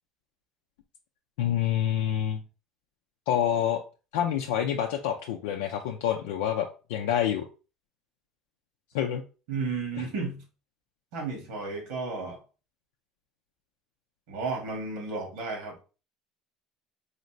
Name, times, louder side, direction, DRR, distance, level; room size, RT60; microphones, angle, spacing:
voice 1, 1.4-2.4 3.3-3.8 4.1-7.4 8.9-9.2, left 10 dB, 90° left, 0.4 m, -27 dB
voice 2, 9.5-10.4 11.1-12.4 14.3-15.8, right 4 dB, 85° right, 1.4 m, -33 dB
4.2 x 2.6 x 3.0 m
supercardioid pair, 105°, 0 cm